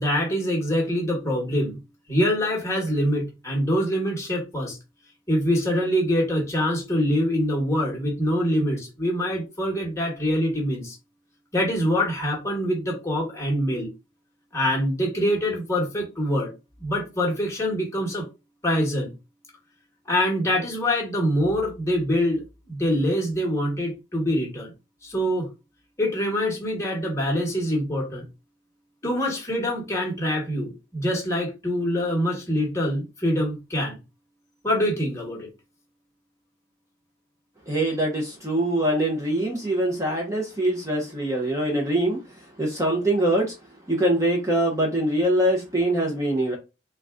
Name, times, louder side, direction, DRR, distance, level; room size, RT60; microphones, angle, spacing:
voice 1, 0.0-1.8 2.1-4.8 5.3-11.0 11.5-13.9 14.5-16.5 16.8-18.2 18.6-19.1 20.1-24.7 25.0-25.5 26.0-28.3 29.0-34.0 34.6-35.5, equal, 15° left, 1.2 m, -24 dB
voice 2, 37.7-42.2 42.6-43.5 43.9-46.6, right 1 dB, 15° right, 0.7 m, -23 dB
3.9 x 2.3 x 3.6 m
head